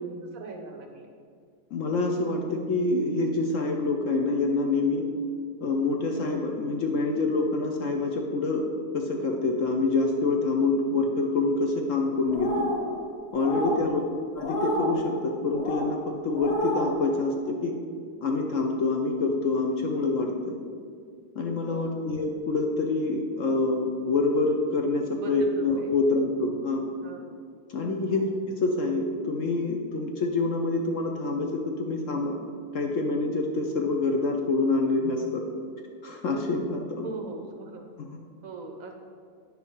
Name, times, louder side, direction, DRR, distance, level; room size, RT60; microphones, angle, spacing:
voice 1, 0.3-1.1 13.5-14.0 21.6-22.1 25.2-25.9 27.0-27.3 28.1-28.3 37.0-37.8 38.4-38.9, right 3 dB, 65° right, 3 dB, 0.9 m, -40 dB
voice 2, 1.7-5.1 5.6-8.7 8.9-12.7 13.3-14.0 14.4-17.7 18.2-20.6 21.4-26.9 27.7-28.2 28.5-32.3 32.7-35.4 36.0-37.1 38.1-38.2, left 3 dB, 65° left, 2 dB, 0.7 m, -26 dB
sound 1, 12.3-12.9 13.4-13.8 14.4-14.9 15.5-15.9 16.3-16.9, equal, 45° left, 2.2 m, -30 dB
9.8 x 4.6 x 5.5 m, 2.2 s
omnidirectional pair, 2.1 m